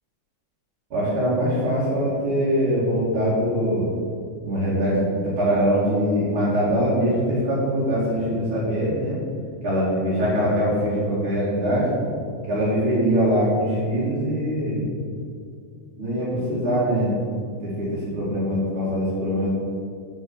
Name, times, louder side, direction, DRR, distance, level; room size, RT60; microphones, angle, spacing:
voice 1, 0.9-3.9 4.4-5.1 5.4-9.2 9.6-12.1 12.4-14.9 16.0-17.2 17.6-19.5, equal, 45° right, -9 dB, 3.0 m, -22 dB
8.1 x 5.7 x 7.1 m, 2.3 s
omnidirectional pair, 3.4 m